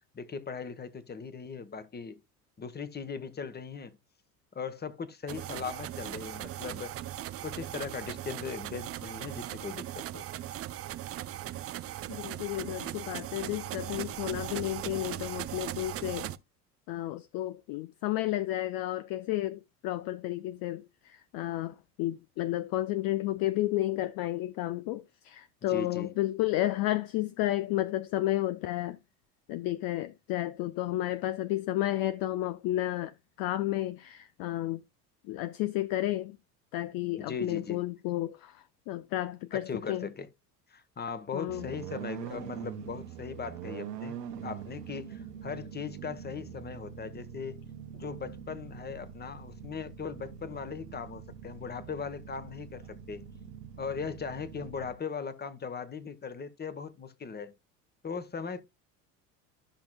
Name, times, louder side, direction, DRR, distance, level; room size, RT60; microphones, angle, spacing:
voice 1, 0.1-2.2 2.6-3.9 4.5-6.9 7.4-10.3 12.8-12.9 25.6-26.1 37.2-37.8 39.5-40.3 40.7-47.6 47.9-53.2 53.8-57.5 58.0-58.6, left 5 dB, 20° left, 1.2 m, -39 dB
sound 1, 5.3-16.4, right 13 dB, 30° right, 0.5 m, -39 dB
voice 2, 12.1-16.3 16.9-29.0 29.5-34.8 35.3-36.4 36.7-40.1 41.3-41.7, left 15 dB, 45° left, 0.6 m, -32 dB
sound 2, 41.5-54.9, right 8 dB, 80° right, 1.2 m, -44 dB
13.0 x 5.9 x 2.3 m
hypercardioid pair, 70°, 48 cm